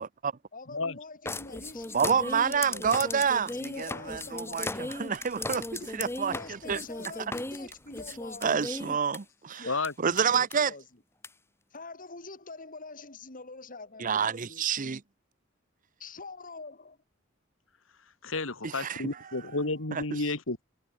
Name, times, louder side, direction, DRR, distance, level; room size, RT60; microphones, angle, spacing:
voice 1, 0.0-0.3 1.9-6.3 6.7-6.8 8.4-9.6 10.0-10.7 14.0-15.0 18.6-19.0 19.9-20.0, right 6 dB, 45° right, 0.7 m, -28 dB
voice 2, 0.5-3.0 3.5-5.0 5.8-8.4 9.5-9.7 10.4-10.8 11.7-14.6 16.0-17.0, left 3 dB, 45° left, 4.5 m, -45 dB
sound 1, 1.3-9.2 9.8-9.9 10.2-10.5 11.2-11.3, left 2 dB, 15° left, 1.2 m, -37 dB
voice 3, 18.2-20.6, left 3 dB, 90° left, 2.7 m, -31 dB
head